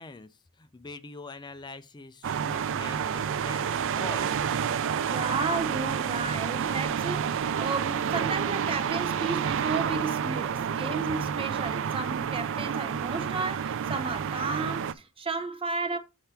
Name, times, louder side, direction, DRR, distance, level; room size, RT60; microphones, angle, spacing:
voice 1, 0.0-4.3, left 3 dB, 20° left, 0.5 m, -44 dB
sound 1, 2.2-14.9, right 7 dB, 60° right, 0.4 m, -29 dB
sound 2, 2.3-11.6 12.0-12.1, left 1 dB, 55° left, 3.4 m, -57 dB
voice 2, 5.1-16.0, right 4 dB, 25° right, 0.7 m, -33 dB
7.4 x 5.6 x 3.4 m
head